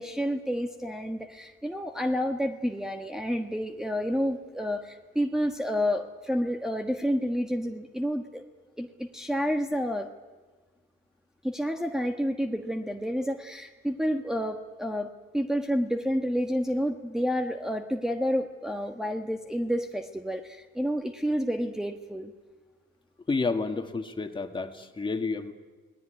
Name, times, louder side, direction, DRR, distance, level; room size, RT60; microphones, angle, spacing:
voice 1, 0.0-8.4 8.8-10.1 11.4-22.3, equal, 5° right, 2 dB, 1.4 m, -29 dB
voice 2, 23.3-25.5, left 3 dB, 25° left, 5 dB, 2.2 m, -30 dB
28.0 x 19.0 x 9.5 m, 1.3 s
cardioid pair, 90°, 20 cm